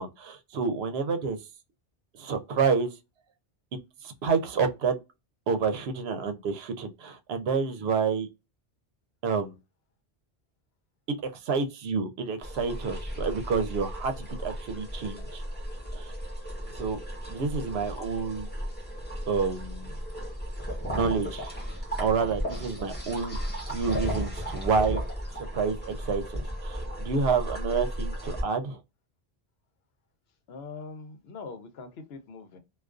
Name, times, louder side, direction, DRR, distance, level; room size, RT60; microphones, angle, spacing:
voice 1, 0.0-1.4 2.2-2.9 4.0-5.0 5.5-8.3 9.2-9.5 11.1-11.2 11.4-15.4 15.9-16.1 16.8-17.0 17.3-18.5 19.3-19.9 20.9-21.5 22.0-23.4 23.7-25.0 25.5-28.8, right 5 dB, 80° right, 0.8 m, -28 dB
sound 1, 12.4-28.4, equal, 10° left, 0.9 m, -35 dB
voice 2, 30.5-32.6, left 4 dB, 80° left, 0.9 m, -42 dB
2.3 x 2.3 x 2.3 m
omnidirectional pair, 1.0 m